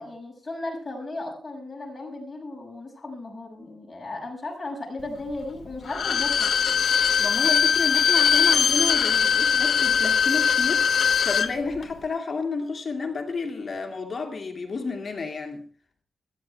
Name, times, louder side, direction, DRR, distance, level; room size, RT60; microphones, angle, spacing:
voice 1, 0.0-6.5, left 2 dB, 15° left, 6.1 m, -35 dB
Bowed string instrument, 5.9-11.5 11.8-11.9, left 6 dB, 60° left, 0.9 m, -21 dB
voice 2, 7.2-15.6, left 4 dB, 35° left, 2.4 m, -31 dB
20.0 x 14.0 x 3.4 m
wide cardioid pair, 165°, 0 cm